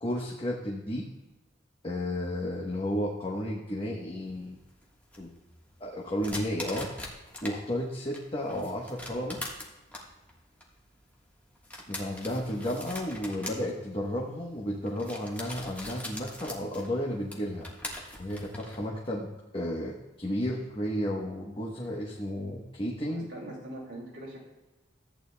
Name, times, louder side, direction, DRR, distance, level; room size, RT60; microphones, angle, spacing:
voice 1, 0.0-1.0 1.8-4.6 5.2-5.3 5.8-6.9 7.4-9.4 11.9-17.7 18.2-23.2, equal, 30° left, -2 dB, 1.1 m, -33 dB
sound 1, 4.3-7.6 7.9-18.9, left 1 dB, 10° left, 1.4 m, -42 dB
voice 2, 23.0-24.4, right 1 dB, 75° right, -2 dB, 2.5 m, -42 dB
14.0 x 9.1 x 2.2 m, 1.1 s
head